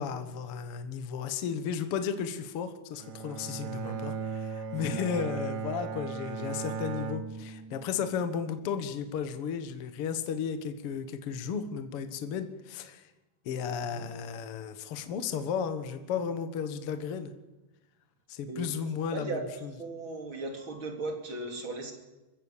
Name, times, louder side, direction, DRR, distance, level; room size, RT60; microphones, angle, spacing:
voice 1, 0.0-13.1 13.4-17.3 18.3-19.7, left 7 dB, 60° left, 9 dB, 1.4 m, -34 dB
Bowed string instrument, 3.0-8.2, right 5 dB, 65° right, 2.4 m, -37 dB
voice 2, 3.6-3.9 4.9-5.3 13.9-14.1 18.5-18.7 19.1-19.4 19.8-21.9, right 3 dB, 35° right, 4 dB, 3.2 m, -37 dB
25.0 x 15.0 x 7.3 m, 1.1 s
omnidirectional pair, 4.7 m